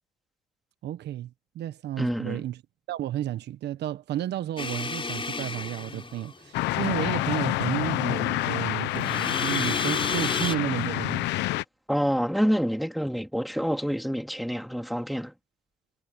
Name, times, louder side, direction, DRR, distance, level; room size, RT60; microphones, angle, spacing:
voice 1, 0.8-2.6 2.9-11.3, right 12 dB, 75° right, 1.4 m, -32 dB
voice 2, 2.0-2.5 11.9-15.3, equal, ahead, 3.1 m, -27 dB
sound 1, 4.6-6.6 9.0-10.6, left 4 dB, 30° left, 5.2 m, -32 dB
sound 2, 6.5-11.6, left 17 dB, 85° left, 1.0 m, -28 dB
supercardioid pair, 65°, 18 cm